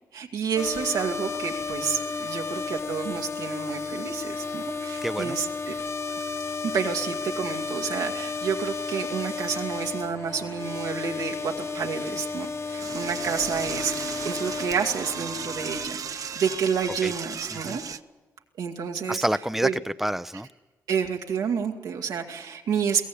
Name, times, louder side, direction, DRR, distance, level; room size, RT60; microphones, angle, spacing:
voice 1, 0.1-5.8 6.6-17.8 18.6-19.2 19.6-19.8 20.9-23.1, right 6 dB, 90° right, 1 dB, 2.0 m, -29 dB
sound 1, 0.6-15.9, left 4 dB, 40° left, 1.0 m, -33 dB
voice 2, 5.0-5.4 17.0-17.1 17.5-17.8 19.1-20.5, right 1 dB, 5° right, 12 dB, 0.6 m, -28 dB
Door / Toilet flush, 12.8-18.0, right 6 dB, 60° right, 0.7 m, -36 dB
22.5 x 16.5 x 8.5 m, 1.2 s
supercardioid pair, 50°, 7 cm